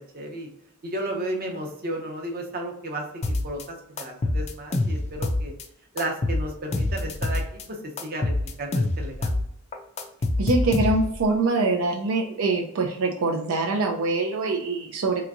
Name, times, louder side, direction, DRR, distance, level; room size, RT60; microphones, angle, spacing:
voice 1, 0.1-0.5 0.8-3.6 3.9-5.5 5.9-7.6 8.0-8.3 8.6-9.4, right 1 dB, 45° right, 2 dB, 0.7 m, -33 dB
sound 1, 3.2-3.6 4.0-5.6 6.0-7.6 8.0-9.5 9.7-11.2, left 2 dB, 30° left, 0.4 m, -26 dB
voice 2, 10.4-15.3, right 3 dB, 80° right, 2 dB, 0.4 m, -24 dB
3.3 x 2.9 x 2.5 m, 0.73 s
head